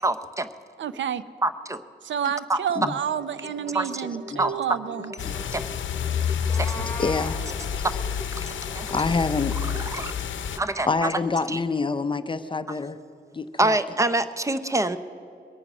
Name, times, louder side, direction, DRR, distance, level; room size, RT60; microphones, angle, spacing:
voice 1, 0.0-0.5 1.4-1.8 2.5-2.6 3.7-4.1 4.4-4.5 5.5-5.6 6.6-6.7 8.7-9.0 9.7-10.1 10.6-11.1 11.5-11.6 13.6-15.0, right 2 dB, 15° right, 0.6 m, -25 dB
voice 2, 0.8-1.2 2.0-5.1, right 8 dB, 75° right, 0.5 m, -29 dB
sound 1, 3.0-10.3, equal, 50° right, 3.3 m, -43 dB
sound 2, 5.2-10.6, left 7 dB, 90° left, 0.7 m, -29 dB
Meow, 6.3-7.3, left 2 dB, 10° left, 2.2 m, -36 dB
voice 3, 6.5-7.4 8.9-9.6 10.9-13.0 13.3-13.8, left 4 dB, 25° left, 0.5 m, -27 dB
22.0 x 9.1 x 6.1 m
wide cardioid pair, 110°, 19 cm